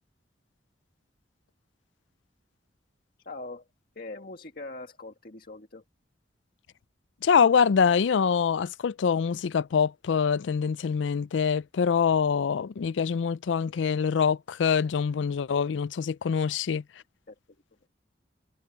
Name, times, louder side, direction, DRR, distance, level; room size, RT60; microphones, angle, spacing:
voice 1, 3.2-3.7 4.0-5.8 16.5-16.6 17.3-17.4, left 2 dB, 50° left, 1.7 m, -42 dB
voice 2, 7.2-16.8, left 6 dB, 85° left, 0.4 m, -24 dB
head